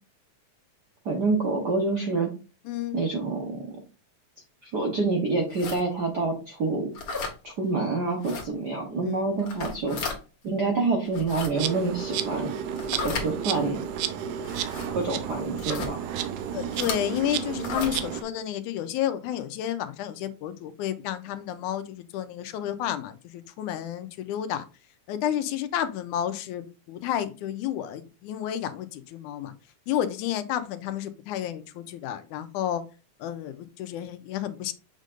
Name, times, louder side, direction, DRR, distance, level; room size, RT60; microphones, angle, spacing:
voice 1, 1.0-2.3 2.9-3.7 4.6-6.9 7.4-10.0 10.4-12.5 13.0-13.9 14.9-16.0, right 3 dB, 65° right, 0 dB, 1.0 m, -27 dB
voice 2, 2.7-3.0 9.0-9.1 16.5-24.6 25.1-29.5 29.9-32.8 33.2-34.7, left 11 dB, 90° left, 11 dB, 2.1 m, -31 dB
sound 1, 5.5-5.8 6.9-7.4 8.2-8.5 9.4-10.2 11.1-11.5 12.8-13.3 14.4-14.9 15.6-15.9 16.7-17.0 17.6-18.0, left 4 dB, 50° left, 2.1 m, -33 dB
Insect, 11.5-18.2, right 9 dB, 90° right, 2.2 m, -32 dB
7.4 x 5.2 x 2.5 m, 0.31 s
omnidirectional pair, 3.5 m